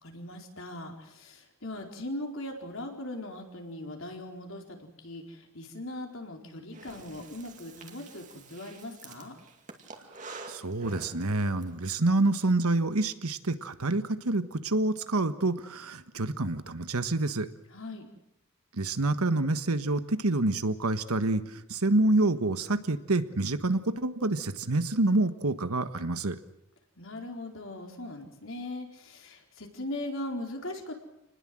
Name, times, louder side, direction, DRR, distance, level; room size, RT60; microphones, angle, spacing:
voice 1, 0.0-9.4 17.7-18.1 27.0-30.9, left 1 dB, 65° left, 2 dB, 4.4 m, -39 dB
Breathing, 6.7-11.7, right 3 dB, 35° right, 2.5 m, -47 dB
voice 2, 10.5-17.5 18.7-26.4, right 2 dB, 90° right, 11 dB, 1.5 m, -27 dB
28.0 x 20.0 x 7.7 m, 0.82 s
head